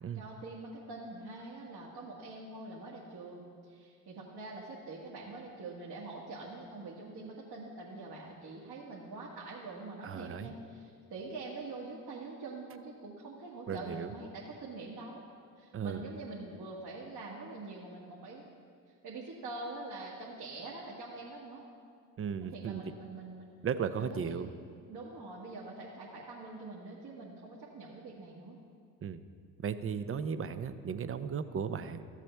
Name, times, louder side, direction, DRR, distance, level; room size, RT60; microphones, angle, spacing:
voice 1, 0.1-15.2 15.6-18.6 18.9-21.6 22.5-23.6 23.9-24.5 24.9-28.6, right 3 dB, 60° right, -5 dB, 1.9 m, -45 dB
voice 2, 10.0-10.5 13.7-14.1 15.7-16.0 22.2-22.9 23.6-24.5 29.0-29.2 29.6-32.0, right 7 dB, 30° right, 12 dB, 0.6 m, -36 dB
14.0 x 7.4 x 3.4 m, 2.2 s
hypercardioid pair, 50°, 43 cm